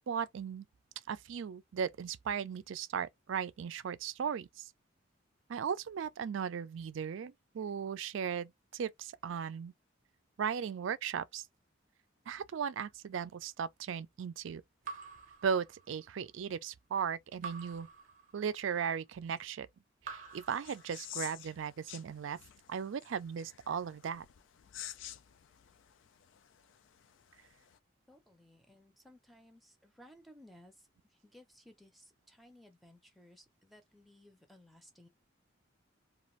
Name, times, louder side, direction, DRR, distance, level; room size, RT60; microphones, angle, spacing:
voice 1, 0.1-0.7 1.1-4.5 5.5-9.7 10.4-11.4 12.3-14.6 15.4-17.9 18.3-19.7 20.1-22.4 22.7-24.3, right 7 dB, 75° right, 0.4 m, -37 dB
Raindrop / Drip, 14.8-16.2 17.4-18.8 20.0-21.4, right 5 dB, 40° right, 0.7 m, -48 dB
sound 1, 20.3-27.8, left 12 dB, 70° left, 0.3 m, -50 dB
voice 2, 28.1-35.1, left 1 dB, ahead, 0.6 m, -59 dB
2.5 x 2.4 x 3.0 m
head